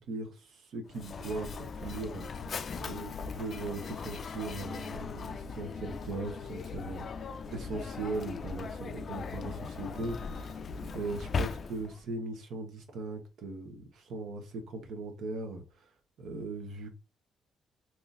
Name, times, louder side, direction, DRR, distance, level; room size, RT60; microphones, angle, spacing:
voice 1, 0.1-10.6 10.9-15.9 16.2-16.9, right 3 dB, 75° right, 1.0 m, -39 dB
Mechanisms, 0.9-12.0, left 5 dB, 50° left, 0.3 m, -39 dB
3.7 x 2.9 x 2.5 m
cardioid pair, 90°, 0 cm